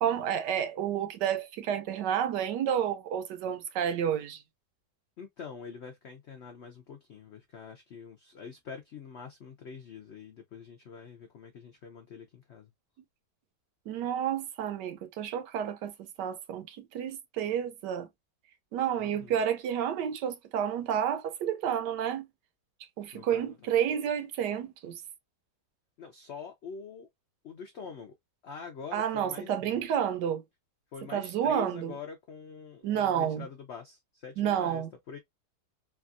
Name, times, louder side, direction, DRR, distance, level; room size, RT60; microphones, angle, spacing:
voice 1, 0.0-4.4 13.9-18.1 18.7-22.3 23.0-25.0 28.9-30.4 31.1-32.0 32.8-33.5 34.4-34.9, right 9 dB, 80° right, 1.2 m, -30 dB
voice 2, 5.2-12.7 19.0-19.4 23.1-23.7 26.0-27.1 27.4-28.1 28.4-29.9 30.9-35.2, left 6 dB, 80° left, 0.6 m, -45 dB
3.3 x 2.3 x 2.5 m
omnidirectional pair, 1.9 m